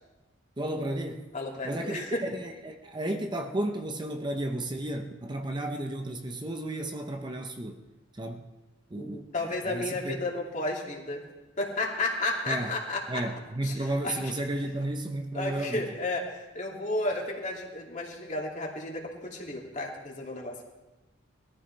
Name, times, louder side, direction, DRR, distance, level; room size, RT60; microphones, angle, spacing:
voice 1, 0.6-1.3 1.6-7.8 8.1-8.5 8.9-10.2 12.5-12.7 13.1-15.9, right 1 dB, 25° right, 4 dB, 0.8 m, -33 dB
voice 2, 1.3-2.2 9.0-11.2 11.6-13.2 13.6-13.7 14.0-14.1 15.3-20.6, left 2 dB, 40° left, -1 dB, 2.6 m, -32 dB
21.5 x 14.0 x 3.4 m, 1.1 s
head